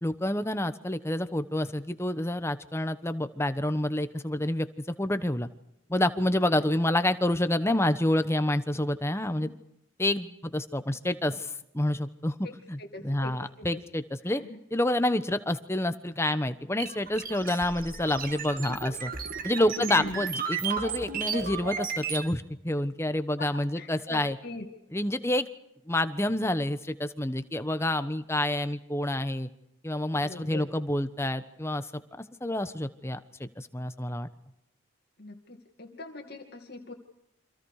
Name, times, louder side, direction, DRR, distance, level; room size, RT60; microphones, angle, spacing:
voice 1, 0.0-5.5 5.9-9.5 10.0-12.4 12.7-14.4 14.7-19.1 19.4-24.4 24.9-25.5 25.9-29.5 29.8-32.0 32.4-34.3, left 1 dB, 15° left, 11 dB, 1.1 m, -28 dB
voice 2, 12.8-13.8 14.3-14.6 19.6-20.2 23.4-24.7 30.2-30.7 35.2-36.9, left 2 dB, 50° left, 3 dB, 2.4 m, -42 dB
sound 1, 16.8-22.3, right 6 dB, 45° right, 2.4 m, -34 dB
29.5 x 26.0 x 5.0 m, 0.80 s
head